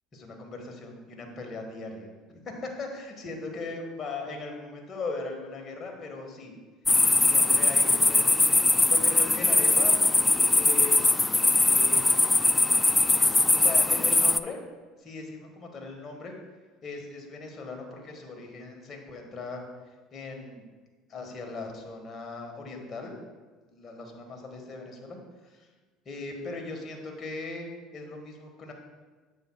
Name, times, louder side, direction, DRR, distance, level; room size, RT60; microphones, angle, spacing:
voice 1, 0.1-2.5 2.8-6.5 7.1-10.1 10.6-11.2 11.7-12.2 13.1-14.6 15.0-16.3 16.8-19.7 20.1-20.7 21.1-23.2 23.7-25.7 26.0-28.7, left 3 dB, 40° left, 2 dB, 1.5 m, -39 dB
sound 1, 6.9-14.4, left 2 dB, 15° left, 0.3 m, -21 dB
9.4 x 7.3 x 2.3 m, 1.3 s
hypercardioid pair, 75°, 0 cm